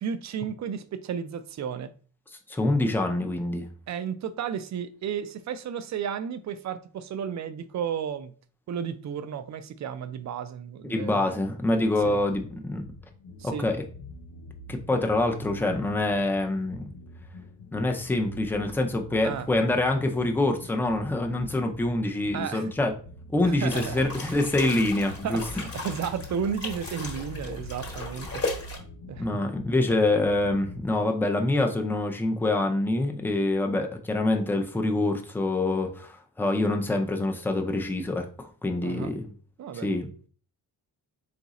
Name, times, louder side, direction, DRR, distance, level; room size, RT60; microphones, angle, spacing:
voice 1, 0.0-1.9 3.9-8.3 8.7-11.5 12.0-12.2 13.4-13.7 19.2-19.5 22.3-22.7 23.4-24.3 25.2-28.4 29.1-29.4 38.8-39.1 39.6-39.9, right 7 dB, 50° right, 0.4 m, -33 dB
voice 2, 2.5-3.7 10.8-12.8 13.4-13.8 14.7-16.9 17.7-22.9 23.3-25.4 29.2-39.2 39.8-40.1, left 2 dB, 5° left, 0.4 m, -26 dB
sound 1, 12.0-30.8, left 1 dB, 80° left, 0.7 m, -45 dB
sound 2, 23.7-28.8, left 3 dB, 40° left, 1.1 m, -36 dB
3.9 x 2.5 x 4.0 m
wide cardioid pair, 135°, 38 cm